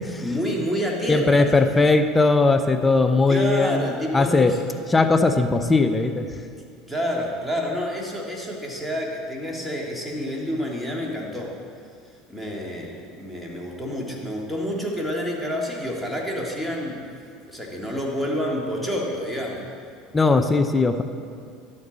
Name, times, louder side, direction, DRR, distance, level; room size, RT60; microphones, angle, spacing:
voice 1, 0.2-1.5 3.3-4.6 6.9-11.6 12.3-17.0 17.5-19.7, equal, ahead, -2 dB, 2.0 m, -28 dB
voice 2, 1.1-4.5 4.9-6.3 20.1-21.0, left 3 dB, 15° left, 8 dB, 0.6 m, -19 dB
12.5 x 8.6 x 4.0 m, 2.3 s
supercardioid pair, 105°, 0 cm